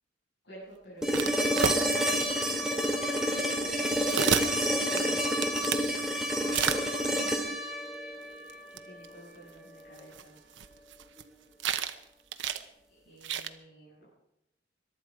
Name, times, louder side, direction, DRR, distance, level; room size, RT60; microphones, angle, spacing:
voice 1, 0.4-2.1 4.6-5.5 8.8-10.4 12.9-14.1, equal, 60° left, -8 dB, 7.6 m, -50 dB
sound 1, 1.0-9.1 11.2-11.3, equal, 5° right, 2.5 m, -29 dB
sound 2, 1.1-2.3 2.8-2.9 3.8-5.9 6.5-7.2 8.5-8.6 8.8-8.9 9.0-9.1 10.0-11.2 11.6-12.0 12.3-12.6 13.2-13.5, right 7 dB, 75° right, 1.0 m, -31 dB
22.5 x 12.0 x 5.0 m, 0.84 s
head